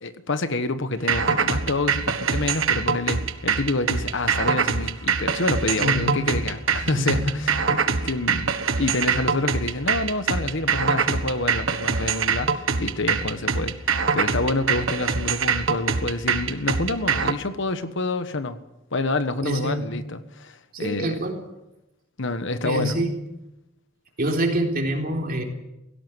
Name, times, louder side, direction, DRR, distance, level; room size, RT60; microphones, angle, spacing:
voice 1, 0.0-13.8 14.1-18.6 18.9-21.2 22.2-22.9, left 2 dB, 60° left, 1.3 m, -27 dB
sound 1, 1.1-17.3, right 5 dB, 65° right, 1.5 m, -24 dB
voice 2, 5.8-6.3 6.8-7.3 19.4-19.9 20.7-21.4 22.6-23.1 24.2-25.4, right 1 dB, 45° right, 3.9 m, -26 dB
17.5 x 17.0 x 9.5 m
head